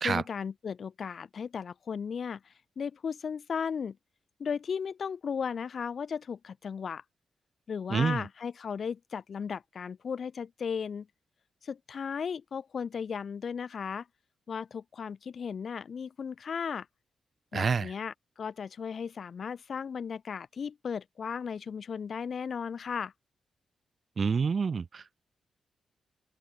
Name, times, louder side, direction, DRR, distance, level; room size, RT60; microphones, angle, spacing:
voice 1, 0.0-4.0 4.4-7.0 7.7-11.1 11.6-14.1 14.5-16.9 17.5-23.1, left 6 dB, 60° left, 1.9 m, -36 dB
voice 2, 7.9-8.2 17.5-17.9 24.2-25.2, right 5 dB, 55° right, 0.4 m, -28 dB
open air
supercardioid pair, 45°, 0 cm